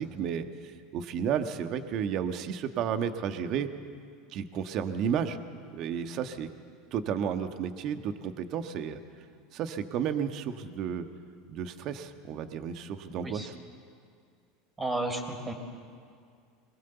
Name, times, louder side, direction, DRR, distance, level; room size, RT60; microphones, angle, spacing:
voice 1, 0.0-3.7 4.3-5.4 5.7-6.5 6.9-9.0 9.5-11.1 11.5-13.5, right 8 dB, 50° right, 8 dB, 1.5 m, -32 dB
voice 2, 14.8-15.5, right 2 dB, 20° right, 4 dB, 4.0 m, -32 dB
23.5 x 20.5 x 7.1 m, 2.2 s
hypercardioid pair, 85°, 0 cm